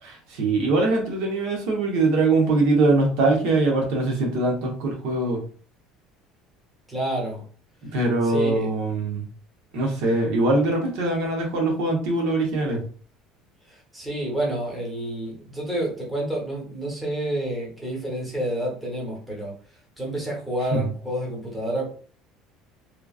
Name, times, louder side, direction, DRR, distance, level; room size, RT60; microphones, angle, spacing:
voice 1, 0.0-5.4 7.8-9.2 9.7-12.8 20.7-20.8, right 2 dB, 70° right, 0 dB, 0.9 m, -22 dB
voice 2, 6.9-7.4 8.2-8.7 13.7-19.5 20.0-21.9, right 1 dB, 5° right, -4 dB, 1.0 m, -29 dB
3.0 x 2.4 x 2.3 m, 0.41 s
cardioid pair, 165°, 0 cm